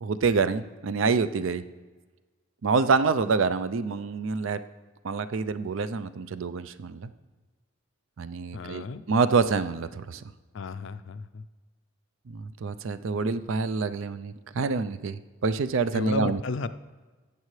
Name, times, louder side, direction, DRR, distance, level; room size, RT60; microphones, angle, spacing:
voice 1, 0.0-1.6 2.6-4.6 5.0-7.1 8.2-10.2 12.3-16.4, right 4 dB, 70° right, 13 dB, 0.4 m, -27 dB
voice 2, 8.5-9.0 10.5-11.4 15.9-16.7, left 4 dB, 65° left, 12 dB, 0.4 m, -33 dB
14.0 x 8.2 x 3.2 m, 1.3 s
head